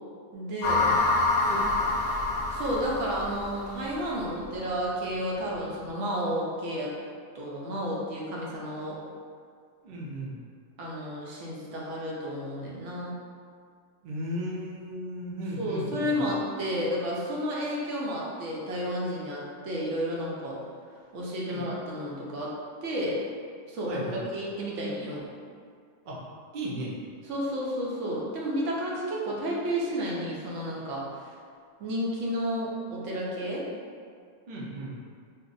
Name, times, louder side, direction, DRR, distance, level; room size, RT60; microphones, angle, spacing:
voice 1, 0.3-0.9 2.5-6.9 7.3-9.0 10.8-13.1 15.6-20.6 21.1-22.5 22.8-23.2 23.7-25.2 27.2-31.0 31.8-33.6, equal, 75° right, -4 dB, 0.9 m, -31 dB
sound 1, 0.6-3.9, left 2 dB, 60° left, 0.7 m, -26 dB
voice 2, 1.4-1.9 9.8-10.3 14.0-16.3 21.5-21.6 23.9-24.2 26.1-26.2 26.5-27.0 34.5-34.9, equal, 55° right, -5 dB, 0.6 m, -35 dB
2.7 x 2.1 x 3.8 m, 2.1 s
omnidirectional pair, 1.3 m